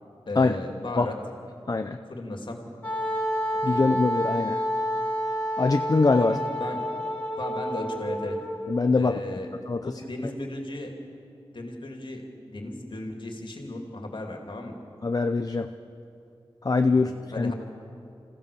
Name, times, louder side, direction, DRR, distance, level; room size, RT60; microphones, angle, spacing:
voice 1, 0.3-1.2 2.1-2.6 3.7-3.8 6.2-6.8 7.4-8.4 8.9-9.5 9.8-10.9 11.5-14.8 16.9-17.5, left 2 dB, 55° left, 2 dB, 2.7 m, -35 dB
Wind instrument woodwind instrument, 2.8-8.8, equal, 20° left, 3.3 m, -29 dB
voice 2, 3.6-4.6 5.6-6.4 8.7-9.1 9.7-9.8 15.0-15.7 16.6-17.1 17.4-17.5, left 3 dB, 40° left, 7 dB, 0.6 m, -22 dB
26.5 x 15.5 x 7.0 m, 2.6 s
wide cardioid pair, 100°, 10 cm